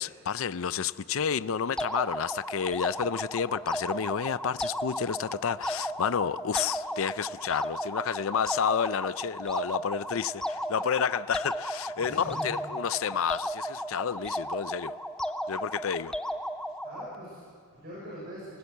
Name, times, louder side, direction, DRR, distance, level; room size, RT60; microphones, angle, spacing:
voice 1, 0.0-14.9 15.5-16.2, left 7 dB, 75° left, 0.5 m, -30 dB
sound 1, 1.8-17.2, equal, 5° left, 0.6 m, -35 dB
voice 2, 12.0-12.5 16.8-18.6, equal, 50° right, 6.3 m, -42 dB
27.5 x 16.0 x 8.1 m
head